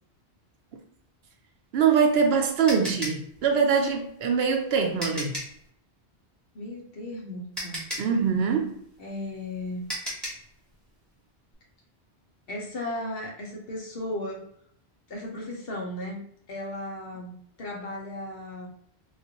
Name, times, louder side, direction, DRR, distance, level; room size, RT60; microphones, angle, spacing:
voice 1, 1.7-5.4 8.0-8.8, right 6 dB, 70° right, 5 dB, 0.8 m, -23 dB
sound 1, 1.8-5.6 7.0-7.1 7.5-10.5, equal, ahead, 1.0 m, -36 dB
voice 2, 6.5-7.8 9.0-9.8 12.5-14.5 15.1-18.7, left 1 dB, 60° left, -1 dB, 1.0 m, -36 dB
3.5 x 2.4 x 2.8 m, 0.66 s
omnidirectional pair, 1.1 m